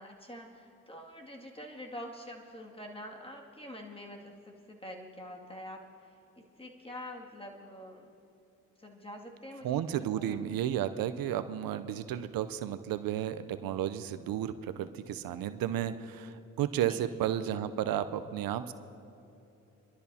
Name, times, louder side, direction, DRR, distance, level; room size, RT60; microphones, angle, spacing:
voice 1, 0.0-8.1 8.8-10.4 11.6-11.7 16.9-17.2, left 1 dB, 15° left, 0 dB, 2.3 m, -46 dB
voice 2, 9.6-18.7, right 10 dB, 85° right, 12 dB, 0.6 m, -33 dB
27.0 x 12.0 x 2.8 m, 2.8 s
supercardioid pair, 50°, 34 cm